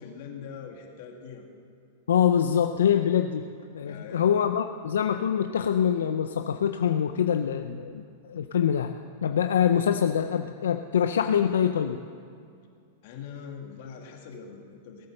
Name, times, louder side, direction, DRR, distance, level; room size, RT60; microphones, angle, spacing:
voice 1, 0.0-1.5 3.8-4.3 13.0-15.1, left 6 dB, 60° left, 2 dB, 2.4 m, -42 dB
voice 2, 2.1-3.5 3.7-8.0 8.3-8.9 9.2-12.0, left 8 dB, 90° left, 7 dB, 0.5 m, -24 dB
17.5 x 8.7 x 6.6 m, 2.3 s
hypercardioid pair, 130°, 0 cm